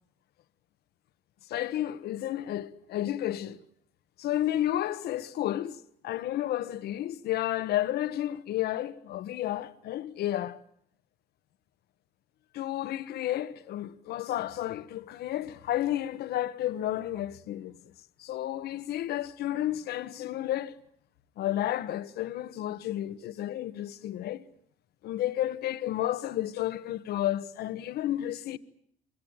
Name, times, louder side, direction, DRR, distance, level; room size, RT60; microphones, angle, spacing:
voice 1, 1.5-3.6 4.2-10.6 12.5-17.8 18.2-20.8 21.4-24.4 25.0-28.6, left 13 dB, 70° left, 1.3 m, -31 dB
25.0 x 22.5 x 8.8 m
cardioid pair, 110°, 17 cm